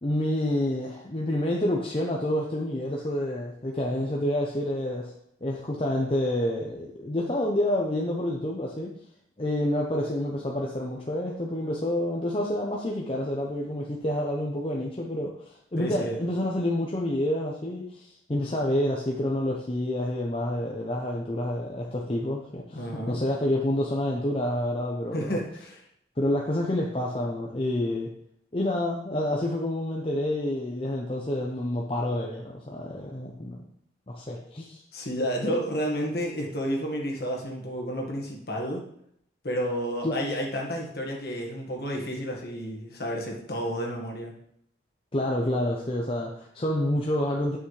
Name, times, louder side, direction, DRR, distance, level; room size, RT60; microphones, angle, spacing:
voice 1, 0.0-5.1 5.4-8.9 9.4-25.4 26.2-28.1 28.5-33.6 34.1-34.8 40.0-40.2 45.1-47.6, left 1 dB, 30° left, -1 dB, 0.7 m, -28 dB
voice 2, 15.8-16.2 22.7-23.2 25.1-25.8 34.9-38.8 39.4-44.3, equal, 55° left, 0 dB, 1.7 m, -31 dB
9.0 x 5.8 x 3.3 m, 0.70 s
head